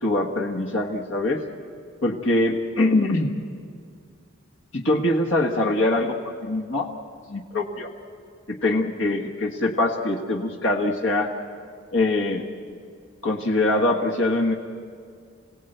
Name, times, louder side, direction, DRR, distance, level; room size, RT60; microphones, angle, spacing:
voice 1, 0.0-1.4 2.0-3.3 4.7-6.9 7.3-7.9 8.5-11.3 11.9-12.4 13.2-14.5, left 2 dB, 65° left, 1 dB, 1.6 m, -23 dB
27.5 x 17.0 x 8.0 m, 2.2 s
head